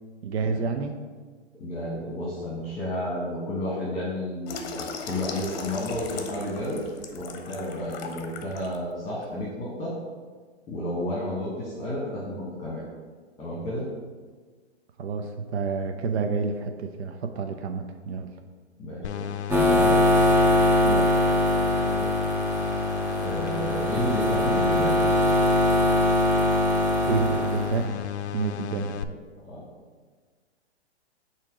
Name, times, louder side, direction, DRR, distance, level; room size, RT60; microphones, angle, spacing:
voice 1, 0.2-1.0 15.0-18.3 20.8-21.1 27.1-29.0, right 5 dB, 70° right, 6 dB, 0.6 m, -29 dB
voice 2, 1.6-6.8 7.1-9.9 10.7-12.8 13.4-13.8 18.8-20.0 23.1-25.0 28.7-29.1 29.5-29.6, left 1 dB, 15° left, -5 dB, 1.4 m, -32 dB
Water tap faucet / Sink (filling or washing), 4.5-8.8 9.2-9.4, left 5 dB, 40° left, 0.8 m, -38 dB
sound 1, 19.0-29.0, left 8 dB, 75° left, 0.5 m, -33 dB
sound 2, 19.5-27.8, left 1 dB, 5° right, 0.6 m, -22 dB
7.2 x 2.9 x 5.0 m, 1.5 s
hypercardioid pair, 125°, 34 cm